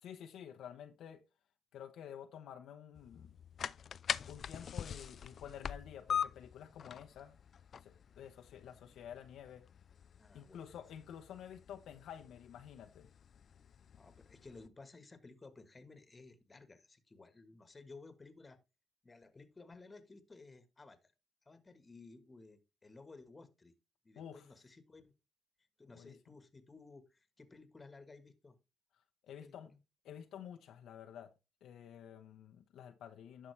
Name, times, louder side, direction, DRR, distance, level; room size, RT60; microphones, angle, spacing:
voice 1, 0.0-1.2 1.7-3.4 4.3-7.4 7.8-9.6 10.3-13.1 24.2-24.5 25.9-26.2 29.2-29.7 30.0-31.3 31.6-33.5, left 9 dB, 80° left, 0.8 m, -50 dB
sound 1, 2.9-14.7, left 8 dB, 55° left, 0.3 m, -44 dB
voice 2, 10.2-10.7 14.0-18.6 19.0-21.1 21.4-23.7 24.0-25.1 25.8-28.6 29.3-29.8, left 3 dB, 25° left, 1.3 m, -56 dB
11.0 x 5.8 x 3.2 m
cardioid pair, 90°, 0 cm